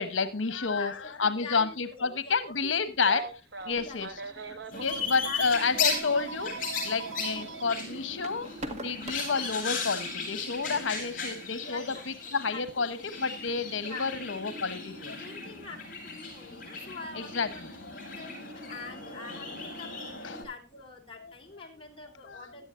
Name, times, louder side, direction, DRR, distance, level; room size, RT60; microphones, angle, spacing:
voice 1, 0.0-3.3 3.7-4.1 4.8-11.8 12.3-15.2 15.4-15.5 17.3-17.5 20.2-20.4 22.3-22.4, left 5 dB, 85° left, 12 dB, 1.1 m, -30 dB
voice 2, 0.6-3.0 3.7-4.2 4.7-6.1 11.5-12.9 13.8-14.9 15.2-22.7, left 3 dB, 30° left, 0 dB, 3.4 m, -45 dB
Telephone, 3.0-4.9 5.7-7.6 9.0-9.1 10.7-10.9, right 4 dB, 60° right, 1.3 m, -40 dB
sound 1, 3.6-9.9, right 1 dB, 35° right, 1.9 m, -47 dB
sound 2, 4.7-20.4, left 4 dB, 45° left, 7.6 m, -37 dB
17.0 x 11.5 x 2.5 m, 0.28 s
head